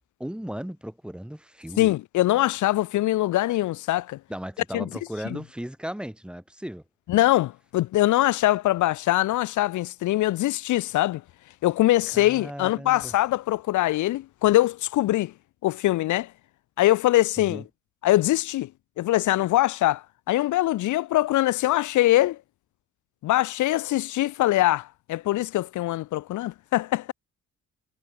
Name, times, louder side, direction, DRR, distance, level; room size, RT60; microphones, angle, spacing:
voice 1, 0.2-1.9 4.3-6.8 12.1-13.1 17.4-17.6, equal, 5° right, 4.7 m, -36 dB
voice 2, 1.8-4.2 4.7-4.8 7.1-11.2 11.6-15.3 15.6-16.3 16.8-17.6 18.0-18.7 19.0-22.4 23.2-27.1, left 15 dB, 75° left, 0.7 m, -23 dB
cardioid pair, 90°, 30 cm